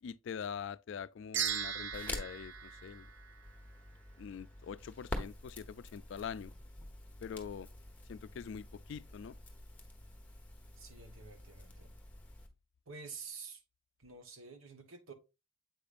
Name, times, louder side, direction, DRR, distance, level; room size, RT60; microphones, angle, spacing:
voice 1, 0.0-3.1 4.2-6.5 7.2-7.7 8.1-9.4, left 7 dB, 60° left, 0.3 m, -44 dB
sound 1, 1.3-3.8, right 9 dB, 60° right, 0.6 m, -39 dB
Crackle, 1.5-12.5, left 1 dB, 10° left, 1.0 m, -47 dB
voice 2, 10.8-12.0 12.9-13.6 14.0-15.1, right 5 dB, 75° right, 1.1 m, -49 dB
7.8 x 5.1 x 2.5 m
head